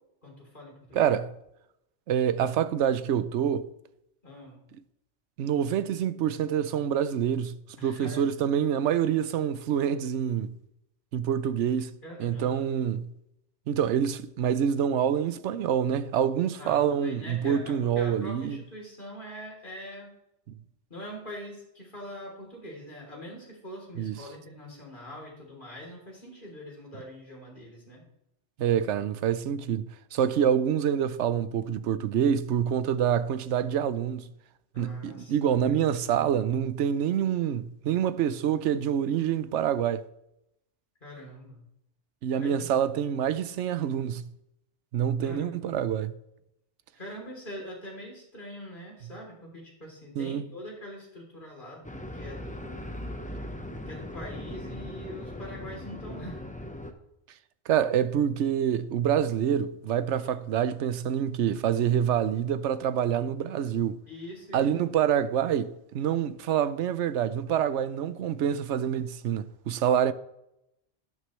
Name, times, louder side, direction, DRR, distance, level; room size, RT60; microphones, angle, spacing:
voice 1, 0.2-1.1 4.2-4.6 7.8-8.3 12.0-12.6 16.6-20.1 20.9-28.0 34.7-36.0 41.0-41.6 42.3-42.7 45.2-45.9 47.0-51.9 52.1-52.9 53.9-56.4 60.2-60.5 64.1-64.7, equal, 45° left, 3.6 m, -43 dB
voice 2, 0.9-1.3 2.1-3.7 5.4-10.6 11.1-13.1 13.7-18.6 24.0-24.2 28.6-34.3 34.8-40.1 42.2-44.3 44.9-46.1 50.2-50.5 57.7-64.0 64.5-70.1, right 9 dB, 75° right, 0.9 m, -26 dB
sound 1, 51.8-56.9, left 1 dB, 5° left, 0.8 m, -39 dB
12.0 x 11.0 x 3.2 m
omnidirectional pair, 1.2 m